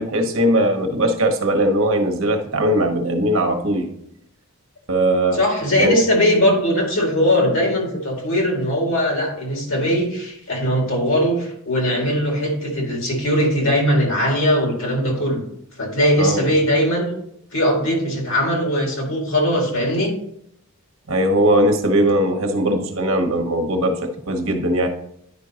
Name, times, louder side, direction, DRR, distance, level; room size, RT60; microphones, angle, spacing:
voice 1, 0.0-3.9 4.9-5.4 5.8-6.0 16.2-16.5 21.1-24.0 24.3-24.9, right 1 dB, 60° right, 5 dB, 1.0 m, -19 dB
voice 2, 5.3-15.4 15.8-17.2 17.5-20.1, equal, 60° left, 0 dB, 2.0 m, -20 dB
10.0 x 5.2 x 2.8 m, 0.72 s
head